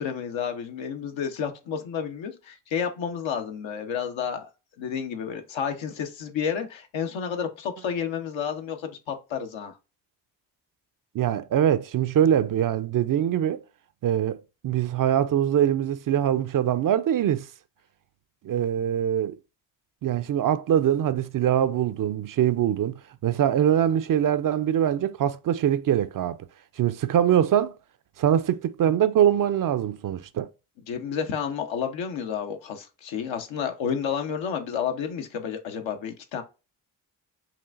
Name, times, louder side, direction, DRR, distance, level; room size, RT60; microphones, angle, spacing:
voice 1, 0.0-4.5 4.8-9.7 30.9-36.4, left 7 dB, 75° left, 0.9 m, -31 dB
voice 2, 11.1-13.6 14.0-14.4 14.6-17.5 18.4-19.4 20.0-26.4 26.8-27.8 28.2-30.5, right 10 dB, 45° right, 0.5 m, -23 dB
5.8 x 2.4 x 2.4 m
hypercardioid pair, 40°, 47 cm